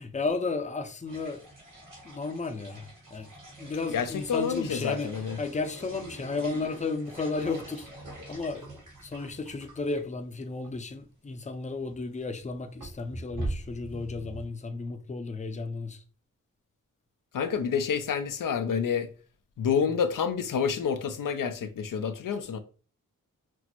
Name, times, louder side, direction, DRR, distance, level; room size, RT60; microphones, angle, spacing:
voice 1, 0.0-1.4 2.0-3.3 3.6-5.1 5.4-7.9 8.3-8.8 9.0-16.0, left 3 dB, 20° left, 0.5 m, -33 dB
sound 1, 1.1-10.0 10.3-10.4 10.6-10.7 11.8-12.0 12.4-14.5, right 2 dB, 70° right, 1.7 m, -43 dB
voice 2, 3.9-5.4 17.3-19.1 19.6-22.6, left 7 dB, 75° left, 0.5 m, -28 dB
6.0 x 2.0 x 2.9 m
cardioid pair, 70°, 33 cm